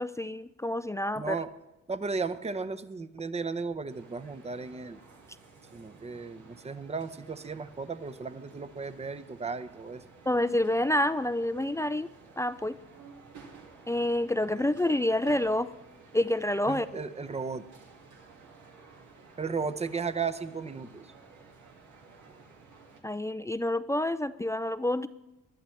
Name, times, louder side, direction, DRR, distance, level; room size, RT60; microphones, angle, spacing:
voice 1, 0.0-1.4 10.3-12.1 12.4-12.8 13.9-15.7 16.1-17.0 23.0-25.1, left 1 dB, 10° left, 14 dB, 0.3 m, -28 dB
voice 2, 1.1-1.5 1.9-5.0 5.7-10.0 16.7-17.6 19.4-21.1, right 4 dB, 20° right, 12 dB, 0.7 m, -35 dB
sound 1, 3.9-23.0, right 4 dB, 75° right, 2.1 m, -54 dB
19.5 x 11.5 x 3.2 m, 0.98 s
cardioid pair, 90°, 30 cm